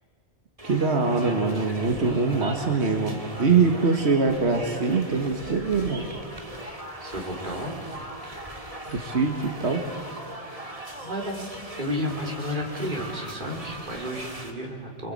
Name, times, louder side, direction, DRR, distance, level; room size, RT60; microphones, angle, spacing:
sound 1, 0.6-14.5, right 1 dB, 35° right, 2.5 m, -39 dB
voice 1, 0.6-6.1 8.9-9.9, right 4 dB, 90° right, 4 dB, 2.0 m, -23 dB
voice 2, 7.0-7.7 11.0-11.5 11.8-15.1, left 1 dB, 50° right, 0 dB, 3.9 m, -32 dB
26.5 x 22.5 x 8.7 m, 2.5 s
omnidirectional pair, 1.1 m